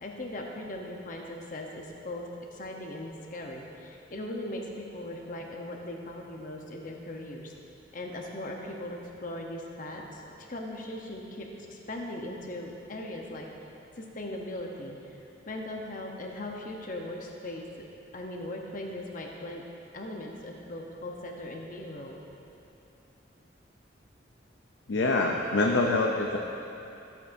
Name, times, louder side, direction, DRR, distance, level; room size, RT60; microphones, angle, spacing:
voice 1, 0.0-7.5 7.9-10.2 10.5-13.5 14.0-15.2 15.5-17.9 18.1-19.6 19.9-22.2, left 1 dB, 45° left, 0 dB, 0.9 m, -39 dB
voice 2, 24.9-26.4, left 2 dB, 70° left, 0 dB, 0.6 m, -25 dB
14.0 x 8.1 x 2.7 m, 2.9 s
head